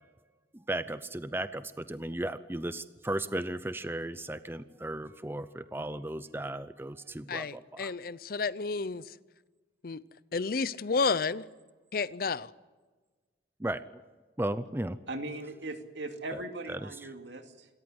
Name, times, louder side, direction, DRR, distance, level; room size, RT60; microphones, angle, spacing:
voice 1, 0.5-7.9 13.6-13.8 14.4-15.0 16.3-16.4 16.7-16.8, right 1 dB, 10° right, 13 dB, 0.6 m, -35 dB
voice 2, 7.3-9.2 9.8-10.0 10.3-11.4 11.9-12.5, left 4 dB, 50° left, 18 dB, 0.6 m, -31 dB
voice 3, 15.1-17.7, right 2 dB, 80° right, 5 dB, 2.4 m, -39 dB
27.0 x 14.0 x 9.7 m, 1.3 s
head